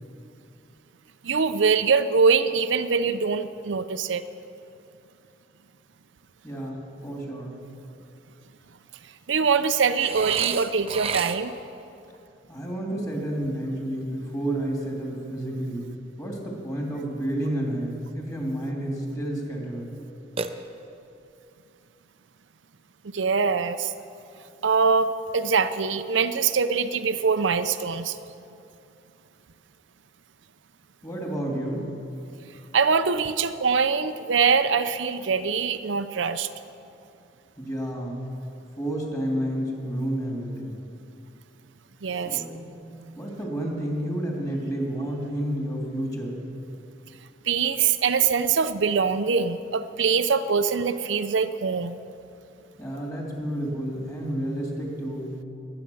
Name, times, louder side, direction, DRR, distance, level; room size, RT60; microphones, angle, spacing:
voice 1, 1.2-4.2 9.3-11.5 23.1-23.9 24.6-28.2 32.7-36.5 42.0-42.4 47.5-52.0, right 5 dB, 90° right, 10 dB, 0.6 m, -23 dB
voice 2, 6.4-7.6 12.5-15.9 16.2-19.9 31.0-31.9 37.6-38.2 38.8-40.8 42.2-42.6 43.1-46.4 52.8-55.4, right 1 dB, 20° left, -1 dB, 3.0 m, -30 dB
Burping eructation, 10.0-11.7 20.4-21.1, right 5 dB, 30° right, 0.6 m, -33 dB
21.0 x 8.8 x 7.2 m, 2.7 s
head